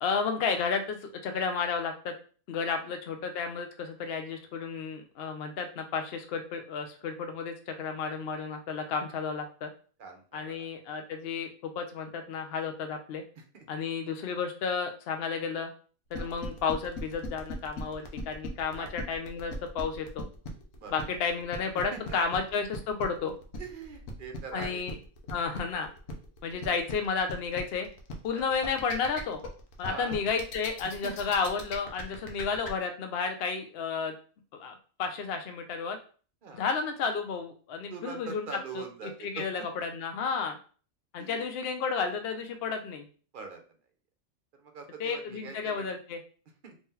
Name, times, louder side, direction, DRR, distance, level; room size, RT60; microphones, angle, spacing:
voice 1, 0.0-2.1 2.5-9.7 10.3-13.2 13.7-15.7 16.1-20.3 20.9-23.3 24.5-24.9 25.3-25.9 26.4-27.9 28.2-29.4 29.8-34.2 34.5-36.0 36.5-38.5 38.7-40.6 41.1-43.1 45.0-46.2, left 5 dB, 60° left, 6 dB, 0.6 m, -32 dB
voice 2, 10.0-10.6 13.4-13.8 16.2-16.4 18.8-18.9 20.7-21.2 21.9-22.4 23.6-24.8 26.5-26.7 28.3-28.4 29.8-30.2 30.8-31.3 36.4-36.6 37.9-39.5 41.2-41.6 43.3-43.6 44.5-45.9 46.6-46.7, right 5 dB, 50° right, 4 dB, 0.7 m, -43 dB
sound 1, 16.1-32.7, left 3 dB, 80° left, 1.1 m, -40 dB
3.1 x 2.7 x 3.7 m, 0.40 s
omnidirectional pair, 1.4 m